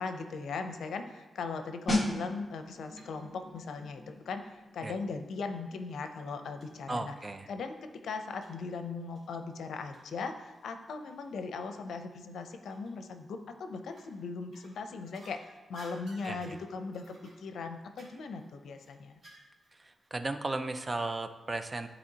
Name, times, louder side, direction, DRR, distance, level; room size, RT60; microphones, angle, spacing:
voice 1, 0.0-7.1 7.5-19.1, left 4 dB, 85° left, 7 dB, 0.6 m, -39 dB
sound 1, 1.9-12.4 12.6-12.9, left 1 dB, 25° left, 1.2 m, -40 dB
sound 2, 3.0-3.2 3.5-4.6 5.3-5.4 5.9-6.0 6.6-6.7 7.1-7.2 8.4-8.7 9.2-11.4 11.8-11.9 12.7-13.2 13.8-14.2 14.5-19.8 20.0-20.1, right 1 dB, 50° right, 1.9 m, -57 dB
voice 2, 6.9-7.5 16.2-16.6 19.7-21.9, right 2 dB, 20° right, 8 dB, 0.4 m, -35 dB
12.5 x 4.2 x 2.8 m, 1.2 s
wide cardioid pair, 165°, 0 cm